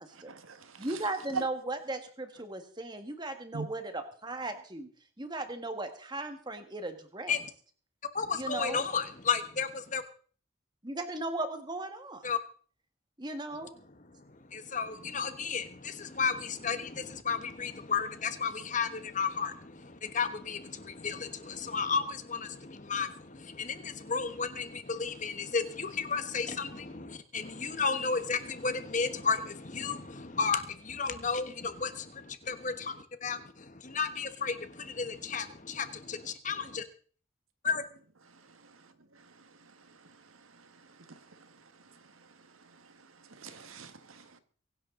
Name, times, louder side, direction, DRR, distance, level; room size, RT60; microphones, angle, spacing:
voice 1, 0.3-0.9 1.3-1.4 3.5-3.7 40.5-40.7 41.0-41.5 43.3-44.4, right 5 dB, 90° right, 1.7 m, -41 dB
voice 2, 0.8-4.9 5.2-7.3 8.3-8.9 10.8-12.3 13.2-13.7, right 2 dB, 20° right, 1.7 m, -37 dB
voice 3, 8.1-10.0 12.2-12.4 14.5-36.8 37.6-37.8, left 5 dB, 40° left, 1.3 m, -33 dB
23.5 x 11.0 x 3.9 m
head